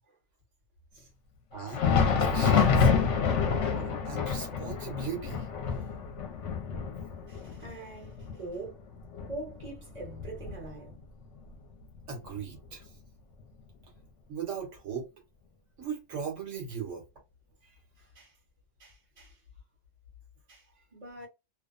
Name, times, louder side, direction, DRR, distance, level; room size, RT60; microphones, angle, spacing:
voice 1, 1.5-1.8 2.2-2.9 3.7-5.5 12.1-12.9 14.3-15.1 15.8-17.0, right 6 dB, 80° right, 1.2 m, -38 dB
Thunder, 1.6-11.0 11.4-11.5 12.2-12.4 13.4-13.5, left 6 dB, 75° left, 0.9 m, -28 dB
voice 2, 7.3-8.8 9.3-11.0 18.1-18.3 18.8-19.3 20.5-20.6 20.9-21.3, right 2 dB, 35° right, 1.3 m, -43 dB
2.7 x 2.0 x 2.4 m
omnidirectional pair, 1.3 m